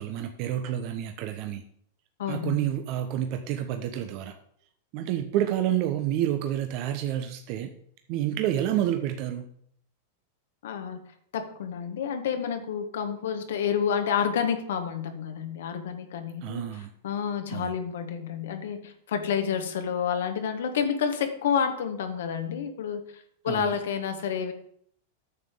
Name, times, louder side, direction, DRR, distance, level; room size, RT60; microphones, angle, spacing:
voice 1, 0.0-1.6 2.3-4.3 4.9-7.7 8.1-9.4 16.4-16.9 17.5-17.7 23.5-23.7, right 11 dB, 50° right, 6 dB, 0.8 m, -29 dB
voice 2, 2.2-2.6 10.6-11.0 11.3-16.6 17.0-24.5, left 7 dB, 75° left, 7 dB, 1.3 m, -29 dB
9.7 x 6.8 x 3.7 m, 0.64 s
hypercardioid pair, 115°, 0 cm